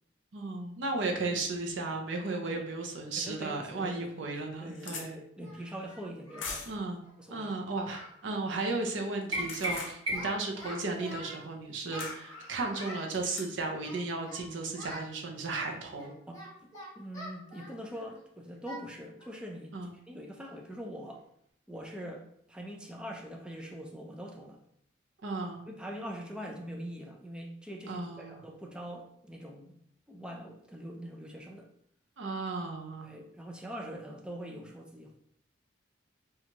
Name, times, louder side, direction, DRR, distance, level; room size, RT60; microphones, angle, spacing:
voice 1, 0.3-5.2 6.7-7.0 7.3-16.1 19.7-19.9 25.2-25.6 27.9-28.4 32.2-33.2, right 3 dB, 75° right, 2 dB, 0.6 m, -35 dB
voice 2, 3.1-4.3 4.6-6.8 7.2-7.5 16.3-19.7 20.1-21.3 21.7-24.6 25.7-29.8 30.1-31.7 33.0-35.2, equal, 5° right, 1 dB, 0.4 m, -43 dB
sound 1, 3.4-3.5 4.0-4.1 4.3-5.1 6.4-6.8 9.2-10.0 12.0-12.2 13.1-13.5, left 4 dB, 80° left, 0.7 m, -41 dB
Singing, 4.6-4.7 5.4-6.6 6.9-7.1 7.4-7.5 7.8-8.2 8.4-8.7 8.9-9.8 10.1-11.4 11.9-13.1 13.8-14.4 14.7-15.1 15.5-18.2 18.6-18.8 19.2-19.4 19.8-19.9 20.4-20.6, equal, 20° left, 1.3 m, -46 dB
sound 2, 9.3-10.5, equal, 30° right, 1.3 m, -34 dB
4.3 x 2.4 x 2.9 m, 0.70 s
head